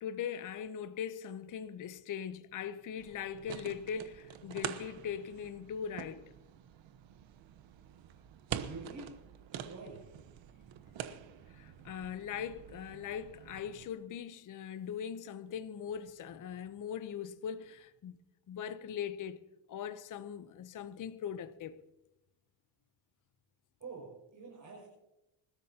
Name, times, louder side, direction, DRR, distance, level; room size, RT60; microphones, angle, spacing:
voice 1, 0.0-6.3 11.5-18.2 18.5-19.4 19.7-21.8, left 8 dB, 40° left, 0.7 m, -40 dB
sound 1, 3.0-13.9, right 10 dB, 70° right, 1.1 m, -46 dB
voice 2, 8.5-9.1 9.5-10.0 23.8-24.9, right 4 dB, 40° right, 5.6 m, -47 dB
26.5 x 13.0 x 2.8 m
cardioid pair, 140°, 47 cm